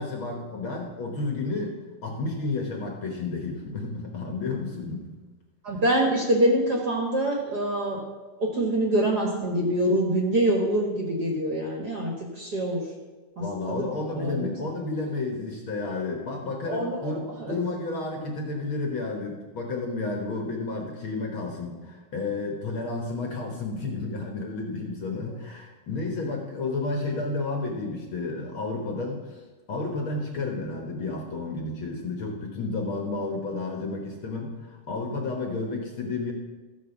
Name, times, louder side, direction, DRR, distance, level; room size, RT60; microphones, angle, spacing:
voice 1, 0.0-5.1 13.4-29.4 29.7-36.3, left 3 dB, 55° left, 1 dB, 1.4 m, -31 dB
voice 2, 5.6-8.0 8.4-12.8 13.4-13.9 14.1-14.5 16.6-17.6, right 1 dB, 45° right, 0 dB, 1.3 m, -25 dB
14.5 x 4.8 x 7.0 m, 1.3 s
omnidirectional pair, 3.8 m